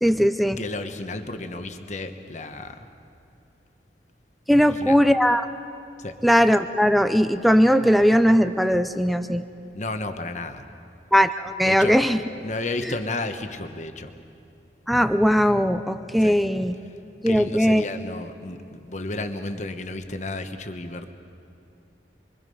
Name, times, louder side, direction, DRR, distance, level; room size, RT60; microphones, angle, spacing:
voice 1, 0.0-0.6 4.5-5.5 6.2-9.4 11.1-12.2 12.8-12.9 14.9-16.7 17.2-17.8, equal, ahead, 9 dB, 0.5 m, -19 dB
voice 2, 0.6-2.8 4.6-5.0 6.0-6.2 9.7-10.7 11.6-11.9 12.4-14.1 16.2-16.4 17.3-21.1, left 2 dB, 40° left, 7 dB, 1.2 m, -32 dB
27.0 x 23.0 x 5.5 m, 2.6 s
head